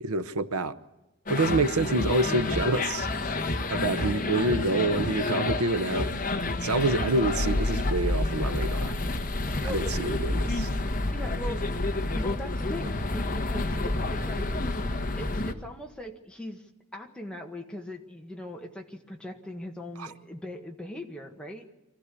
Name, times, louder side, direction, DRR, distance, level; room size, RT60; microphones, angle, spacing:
voice 1, 0.0-0.8 1.3-3.1 3.7-6.1 6.6-9.0 9.6-10.7 20.0-20.1, right 2 dB, 90° right, 0.9 m, -27 dB
sound 1, 1.3-15.5, left 2 dB, 40° left, 1.2 m, -29 dB
voice 2, 9.6-10.0 11.1-11.7 12.1-14.5 15.2-21.7, equal, 5° left, 1.6 m, -40 dB
25.0 x 15.0 x 8.4 m
head